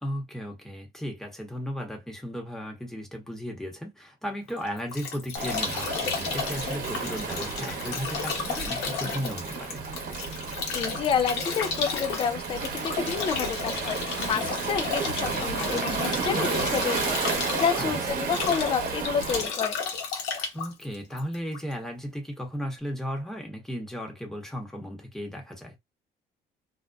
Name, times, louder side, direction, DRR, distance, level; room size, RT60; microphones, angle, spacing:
voice 1, 0.0-9.8 17.8-18.0 20.5-25.8, equal, 5° left, 1.0 m, -35 dB
Bathtub (filling or washing) / Drip / Trickle dribble, 4.5-21.7, left 5 dB, 85° left, 0.9 m, -33 dB
Waves surf, 5.4-19.5, right 5 dB, 55° right, 1.0 m, -32 dB
voice 2, 10.7-19.8, left 7 dB, 30° left, 0.4 m, -29 dB
2.6 x 2.2 x 2.2 m
cardioid pair, 110°, 17 cm